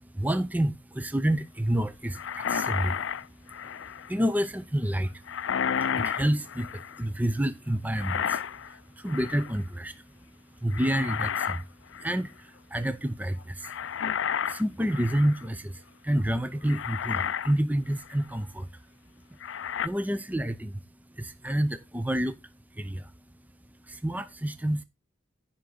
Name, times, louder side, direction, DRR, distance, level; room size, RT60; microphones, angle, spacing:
voice 1, 0.0-19.4 19.8-24.8, right 1 dB, 10° right, 0.5 m, -30 dB
sound 1, 2.1-4.1 5.3-7.0 7.9-8.7 9.1-9.6 10.7-11.6 11.9-12.2 13.6-15.5 16.2-16.3 16.7-17.6 18.0-18.1 19.4-19.9, left 8 dB, 65° left, 0.4 m, -31 dB
14.5 x 5.8 x 3.9 m
head